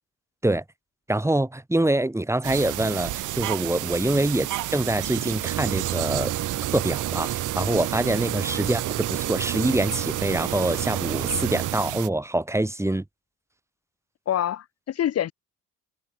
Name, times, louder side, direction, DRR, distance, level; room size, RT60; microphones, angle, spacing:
voice 1, 1.1-6.3 6.7-13.0, right 1 dB, 10° right, 3.0 m, -25 dB
sound 1, 2.4-12.1, right 16 dB, 85° right, 1.9 m, -31 dB
Mechanisms, 5.4-11.7, right 12 dB, 55° right, 0.7 m, -31 dB
voice 2, 14.3-15.3, left 11 dB, 55° left, 1.0 m, -27 dB
cardioid pair, 90°, 30 cm